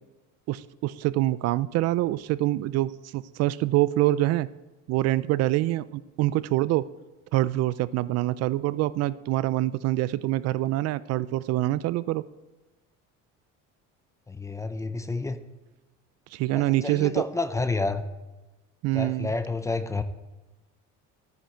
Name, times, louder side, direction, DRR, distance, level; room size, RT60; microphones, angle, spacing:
voice 1, 0.5-4.5 4.9-6.9 7.3-12.2 16.3-17.2 18.8-19.3, right 16 dB, 55° right, 17 dB, 0.4 m, -25 dB
voice 2, 14.3-15.4 16.5-18.1 18.9-20.0, left 3 dB, 10° left, 10 dB, 0.5 m, -29 dB
13.0 x 9.6 x 4.4 m, 1.1 s
cardioid pair, 155°, 31 cm